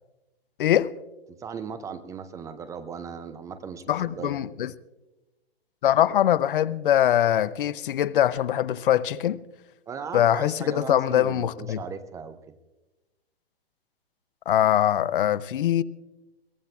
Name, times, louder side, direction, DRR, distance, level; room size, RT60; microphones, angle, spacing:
voice 1, 0.6-0.9 3.9-4.7 5.8-9.4 10.1-11.8 14.5-15.8, left 11 dB, 60° left, 0.6 m, -22 dB
voice 2, 1.4-4.3 9.9-12.6, right 6 dB, 10° right, 0.5 m, -37 dB
22.5 x 18.0 x 2.4 m
hypercardioid pair, 125°, 31 cm